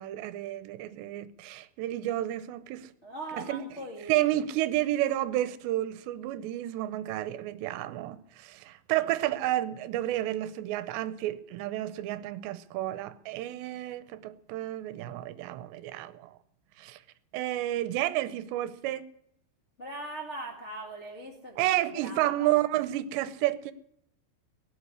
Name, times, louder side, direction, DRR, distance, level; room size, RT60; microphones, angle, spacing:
voice 1, 0.0-2.9 3.4-3.6 4.1-16.3 16.8-17.0 17.3-19.0 21.6-23.7, right 14 dB, 80° right, 2.8 m, -31 dB
voice 2, 3.0-4.2 19.8-22.6, right 2 dB, 85° left, 0.6 m, -40 dB
18.0 x 8.3 x 9.7 m
omnidirectional pair, 5.2 m